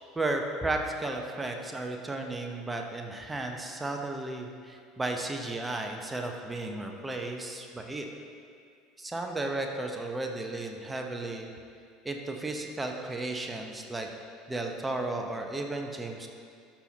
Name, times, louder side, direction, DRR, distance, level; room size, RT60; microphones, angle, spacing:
voice 1, 0.1-8.1 9.0-11.5 12.0-14.1 14.5-16.3, right 2 dB, 15° right, 3 dB, 0.9 m, -34 dB
13.0 x 5.8 x 2.9 m, 2.3 s
figure-of-eight pair, 70°, 0 cm